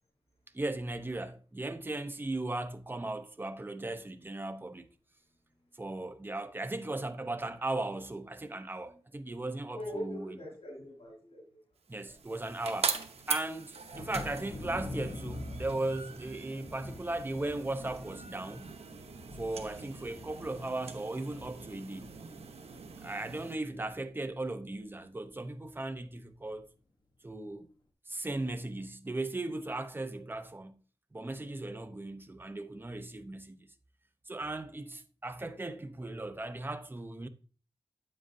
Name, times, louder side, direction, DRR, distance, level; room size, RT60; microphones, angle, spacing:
voice 1, 0.5-4.9 5.8-10.4 11.9-13.0 13.3-18.7 19.4-22.2 23.0-26.7 27.2-27.7 28.1-30.8 31.1-33.7 34.3-37.3, right 2 dB, 20° right, 0.7 m, -37 dB
voice 2, 9.7-11.6 12.0-12.1, equal, 80° left, 4.0 m, -42 dB
sound 1, 11.9-23.6, right 5 dB, 85° right, 0.8 m, -42 dB
Thunder, 13.9-23.3 23.6-24.3 24.7-24.8 25.2-25.4, left 2 dB, 45° left, 1.1 m, -46 dB
8.7 x 7.5 x 2.7 m
wide cardioid pair, 105°, 10 cm